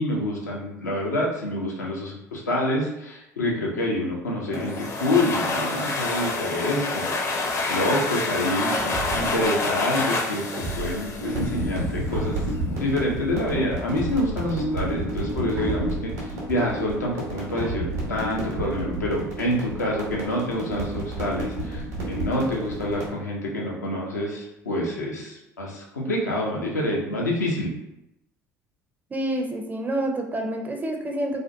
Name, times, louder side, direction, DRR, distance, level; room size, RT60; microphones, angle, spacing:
voice 1, 0.0-7.3 7.7-10.4 10.8-12.4 12.8-27.7, left 1 dB, 90° left, -3 dB, 0.5 m, -27 dB
sound 1, 4.5-12.0, left 3 dB, 35° left, 0.5 m, -28 dB
sound 2, 8.8-9.5 10.5-11.2 12.1-12.8 13.9-14.5 15.6-16.3 17.6-18.2, right 3 dB, 60° right, 0.6 m, -33 dB
sound 3, 11.2-23.1, right 1 dB, 80° right, 0.9 m, -31 dB
voice 2, 29.1-31.4, right 1 dB, 20° right, 3 dB, 0.5 m, -28 dB
2.5 x 2.1 x 2.5 m, 0.88 s
hypercardioid pair, 65°, 9 cm